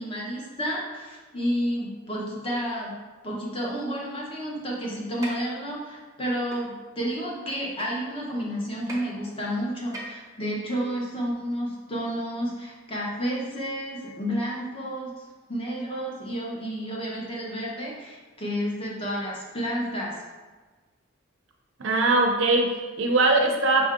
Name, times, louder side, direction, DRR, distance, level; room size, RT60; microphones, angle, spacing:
voice 1, 0.0-2.9 3.2-20.2, equal, 25° left, -4 dB, 0.9 m, -31 dB
sound 1, 5.2-5.3 6.5-6.6 7.8-7.9 8.9-9.0 9.9-10.3, right 2 dB, 15° right, 0.7 m, -37 dB
voice 2, 21.8-23.9, right 2 dB, 60° right, 1 dB, 0.6 m, -21 dB
5.6 x 2.6 x 3.6 m, 1.3 s
head